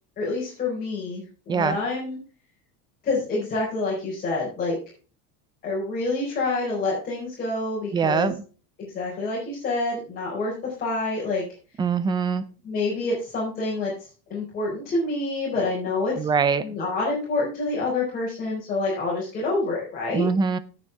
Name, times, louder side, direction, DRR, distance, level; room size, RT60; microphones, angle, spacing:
voice 1, 0.2-2.2 3.0-4.8 5.6-8.4 8.8-11.4 12.6-13.9 14.3-16.3 16.6-20.3, left 3 dB, 25° left, 4.5 m, -27 dB
voice 2, 7.9-8.3 11.8-12.4 16.2-16.7 20.1-20.6, right 6 dB, 10° right, 0.5 m, -23 dB
17.5 x 6.5 x 3.4 m
cardioid pair, 175°, 37 cm